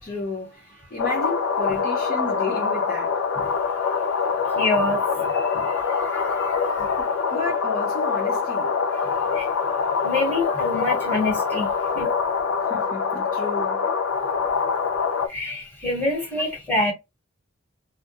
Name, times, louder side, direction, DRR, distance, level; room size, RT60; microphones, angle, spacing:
voice 1, 0.0-3.2 6.8-8.8 10.5-10.6 12.6-13.9 14.8-15.6, left 3 dB, 45° left, 0.7 m, -33 dB
sound 1, 1.0-15.3, left 5 dB, 80° left, 0.4 m, -24 dB
voice 2, 4.5-7.0 9.3-9.5 10.0-12.1 15.3-16.9, left 2 dB, 10° left, 1.1 m, -27 dB
2.2 x 2.1 x 2.9 m
head